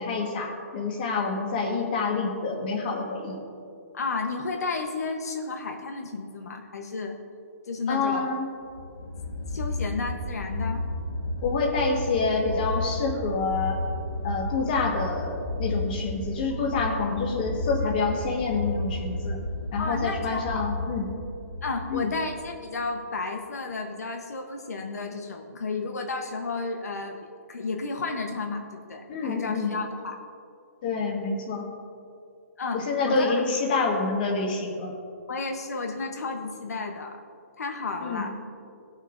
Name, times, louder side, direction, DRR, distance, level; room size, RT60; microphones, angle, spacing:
voice 1, 0.0-3.4 7.9-8.5 11.4-13.8 14.2-19.4 19.7-21.1 21.9-22.1 29.1-29.8 30.8-31.7 32.7-34.9 38.0-38.3, left 4 dB, 35° left, 1 dB, 1.5 m, -27 dB
voice 2, 3.9-7.2 7.7-8.3 9.5-10.8 19.8-20.7 21.6-30.2 32.6-33.4 35.3-37.2 37.6-38.3, left 3 dB, 85° left, 4 dB, 0.9 m, -32 dB
sound 1, 8.6-22.8, left 2 dB, 70° left, 1.9 m, -32 dB
18.0 x 6.4 x 2.6 m, 2.5 s
hypercardioid pair, 165°, 8 cm